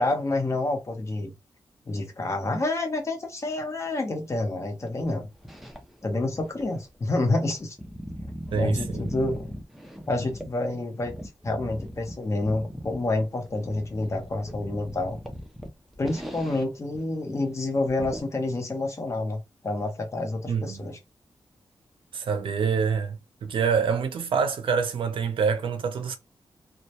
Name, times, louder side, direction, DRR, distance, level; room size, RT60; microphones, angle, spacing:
voice 1, 0.0-1.3 1.9-5.3 6.0-7.8 8.5-9.6 10.1-11.2 11.4-15.2 16.0-21.0, left 2 dB, 35° left, 0.6 m, -28 dB
sound 1, 4.9-6.0 6.4-10.6 11.0-16.7 16.9-17.0 17.4-17.5 17.9-18.2, equal, ahead, 0.4 m, -39 dB
voice 2, 8.5-9.1 20.5-20.8 22.1-26.2, right 6 dB, 75° right, 0.4 m, -26 dB
2.2 x 2.0 x 2.7 m
wide cardioid pair, 160°, 9 cm